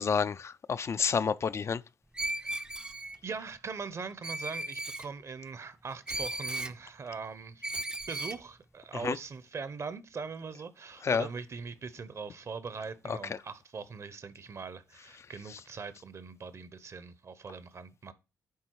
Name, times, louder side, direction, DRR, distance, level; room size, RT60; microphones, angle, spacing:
voice 1, 0.0-1.8 9.0-9.2 11.0-11.3 13.1-13.2, left 6 dB, 45° left, 0.4 m, -29 dB
Screech, 2.2-3.2 4.2-5.1 6.1-6.8 7.6-8.4, right 1 dB, 15° right, 0.5 m, -36 dB
voice 2, 2.4-2.7 3.2-7.6 8.1-18.1, right 5 dB, 50° right, 0.8 m, -41 dB
9.5 x 3.6 x 4.6 m
cardioid pair, 75°, 6 cm